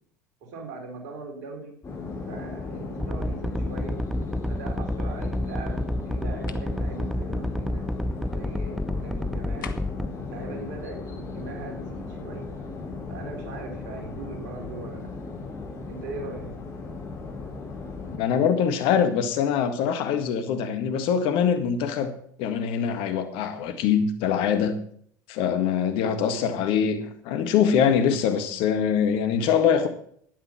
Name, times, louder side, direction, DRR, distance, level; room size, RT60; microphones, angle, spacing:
voice 1, 0.4-1.8 2.3-4.0 4.5-7.9 8.3-9.8 10.3-12.5 13.1-15.1 15.9-16.5, right 3 dB, 65° right, 3.9 m, -40 dB
sound 1, 1.8-18.2, left 3 dB, 30° left, 5.9 m, -36 dB
sound 2, 3.0-10.1, left 1 dB, ahead, 0.8 m, -29 dB
sound 3, 6.5-6.7 9.6-10.1, left 9 dB, 75° left, 0.9 m, -41 dB
voice 2, 18.1-22.1 22.4-24.8 25.3-29.9, left 7 dB, 55° left, 1.8 m, -23 dB
12.0 x 10.0 x 5.7 m
figure-of-eight pair, 70°, 11 cm